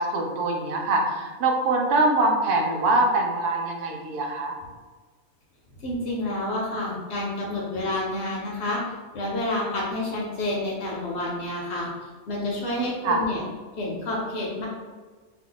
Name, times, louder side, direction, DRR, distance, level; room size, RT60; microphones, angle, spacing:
voice 1, 0.0-4.5 13.0-13.2, right 2 dB, 90° right, 1 dB, 1.1 m, -23 dB
voice 2, 5.8-8.8 9.1-13.4 13.8-14.7, left 1 dB, 60° left, -3 dB, 0.7 m, -29 dB
2.6 x 2.2 x 3.8 m, 1.4 s
omnidirectional pair, 1.5 m